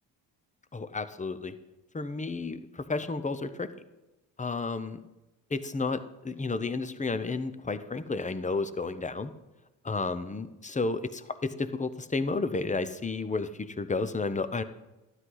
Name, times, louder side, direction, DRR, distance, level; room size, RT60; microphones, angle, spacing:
voice 1, 0.7-1.5 1.9-3.7 4.4-5.0 5.5-9.3 9.8-14.6, left 3 dB, 15° left, 12 dB, 0.8 m, -32 dB
12.0 x 9.8 x 4.0 m, 1.0 s
supercardioid pair, 60°, 48 cm